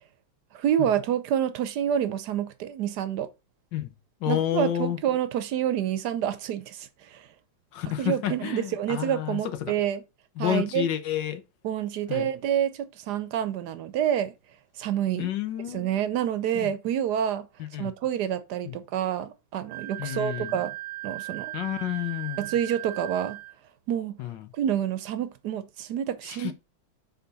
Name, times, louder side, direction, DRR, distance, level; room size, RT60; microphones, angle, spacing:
voice 1, 0.5-3.3 4.3-7.3 8.0-10.0 10.4-10.9 11.6-14.3 14.8-15.3 15.7-17.5 17.8-20.7 21.0-21.5 22.4-23.4 23.9-24.2 24.5-26.5, right 10 dB, 65° right, 1.1 m, -28 dB
voice 2, 4.2-5.0 7.7-9.7 10.4-11.4 12.1-12.3 15.2-15.8 16.6-16.7 17.6-17.9 18.6-18.8 20.0-20.6 21.5-22.4 24.2-24.4 26.2-26.5, left 12 dB, 70° left, 1.4 m, -30 dB
Wind instrument woodwind instrument, 19.7-23.6, right 17 dB, 85° right, 1.5 m, -38 dB
6.6 x 4.1 x 4.0 m
omnidirectional pair, 2.2 m